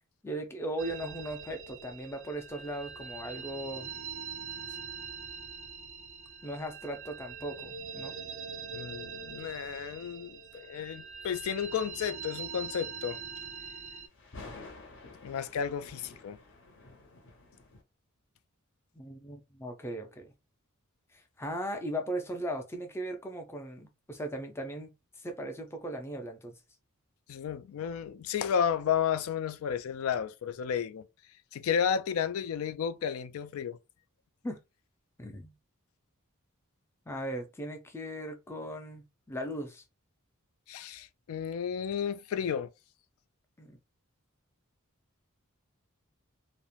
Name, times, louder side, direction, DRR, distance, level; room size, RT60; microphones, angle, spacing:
voice 1, 0.2-3.9 6.4-8.2 18.9-20.3 21.1-24.9 25.2-26.6 34.4-34.6 35.2-35.5 37.1-39.8 43.6-43.8, right 1 dB, 10° left, 0.4 m, -38 dB
sound 1, 0.8-14.1, right 6 dB, 60° right, 0.4 m, -43 dB
voice 2, 8.7-13.2 15.2-16.4 27.3-31.1 31.5-33.8 40.7-42.7, left 7 dB, 75° left, 0.3 m, -32 dB
sound 2, 14.1-17.8, left 3 dB, 60° left, 0.7 m, -50 dB
2.4 x 2.0 x 3.0 m
head